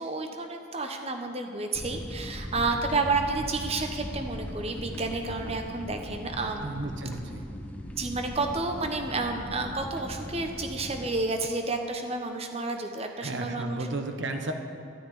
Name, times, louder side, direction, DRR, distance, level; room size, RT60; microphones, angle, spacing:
voice 1, 0.0-6.7 7.9-13.8, right 3 dB, 30° right, 5 dB, 1.0 m, -30 dB
sound 1, 1.7-11.1, equal, 5° left, 0.7 m, -39 dB
voice 2, 6.6-7.4 13.2-14.5, right 2 dB, 60° right, 5 dB, 1.0 m, -33 dB
13.0 x 6.0 x 9.8 m, 2.6 s
head